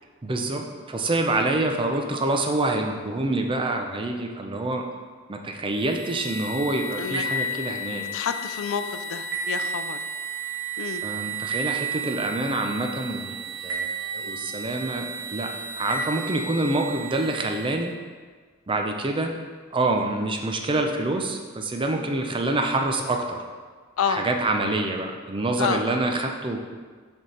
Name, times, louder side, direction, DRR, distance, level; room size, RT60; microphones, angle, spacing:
voice 1, 0.2-4.8 5.3-8.1 11.0-17.9 18.7-19.3 19.7-23.4 24.1-26.7, right 2 dB, 25° right, 3 dB, 0.5 m, -26 dB
sound 1, 5.7-17.9, right 3 dB, 85° right, 1.3 m, -32 dB
voice 2, 8.1-10.0 10.8-11.0 24.0-24.3 25.6-26.0, left 6 dB, 70° left, 9 dB, 0.4 m, -29 dB
6.2 x 3.6 x 4.3 m, 1.5 s
head